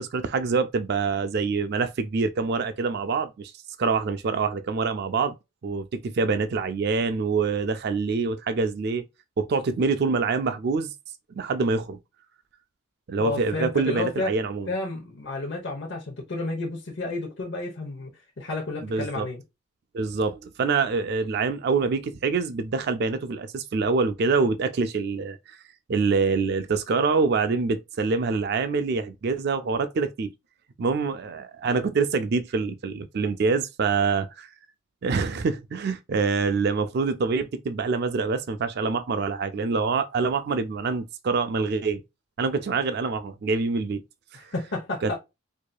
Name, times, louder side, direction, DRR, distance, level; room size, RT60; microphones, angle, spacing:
voice 1, 0.0-3.5 3.8-5.3 5.6-9.0 9.4-10.9 11.4-12.0 13.1-14.7 18.9-19.3 19.9-25.6 25.9-30.3 30.8-34.5 35.0-42.0 42.4-44.0 44.3-44.5 45.0-45.1, right 4 dB, 50° right, 0.4 m, -25 dB
voice 2, 13.2-14.3 14.7-18.1 18.4-19.4 44.3-45.1, left 2 dB, 60° left, 0.9 m, -31 dB
4.7 x 2.7 x 2.2 m
head